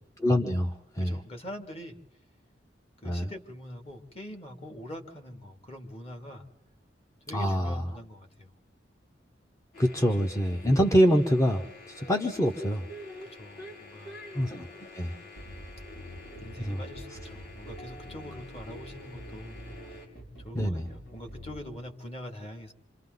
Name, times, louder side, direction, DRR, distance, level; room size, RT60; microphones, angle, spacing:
voice 1, 0.2-1.2 3.0-3.3 7.3-7.8 9.8-12.8 14.3-15.1 16.6-16.8 20.5-20.8, equal, 15° left, 4 dB, 1.1 m, -25 dB
voice 2, 1.0-2.0 3.0-6.5 7.3-8.5 9.9-10.0 13.2-14.2 15.0-15.3 16.4-19.6 19.9-20.0 20.4-22.7, equal, 35° left, 4 dB, 2.6 m, -44 dB
sound 1, 9.7-20.1, left 2 dB, 55° left, 7.0 m, -47 dB
sound 2, 15.4-21.8, equal, 75° left, 6.4 m, -46 dB
28.0 x 26.5 x 4.0 m, 0.86 s
head